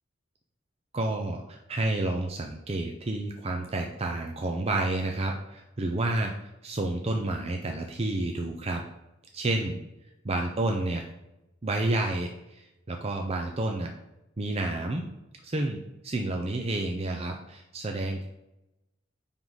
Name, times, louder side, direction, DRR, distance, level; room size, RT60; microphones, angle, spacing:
voice 1, 0.9-8.8 9.3-9.8 10.2-11.0 11.6-13.9 14.4-15.0 15.4-18.3, right 2 dB, 30° right, 2 dB, 0.6 m, -30 dB
9.3 x 3.7 x 4.0 m, 0.92 s
head